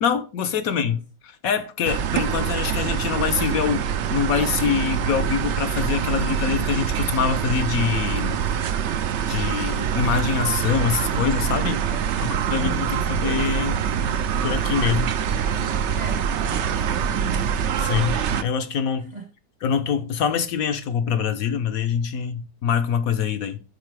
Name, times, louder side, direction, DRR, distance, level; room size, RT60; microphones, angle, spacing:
voice 1, 0.0-8.4 9.3-11.8 12.2-13.8 14.4-15.1 17.8-19.1 19.6-23.6, left 7 dB, 65° left, 1.0 m, -25 dB
voice 2, 0.6-1.0 11.8-13.2 15.9-17.5 19.1-19.3, right 2 dB, 35° right, 0.7 m, -38 dB
sound 1, 1.8-18.4, right 8 dB, 70° right, 0.6 m, -24 dB
10.5 x 4.0 x 3.3 m
omnidirectional pair, 1.8 m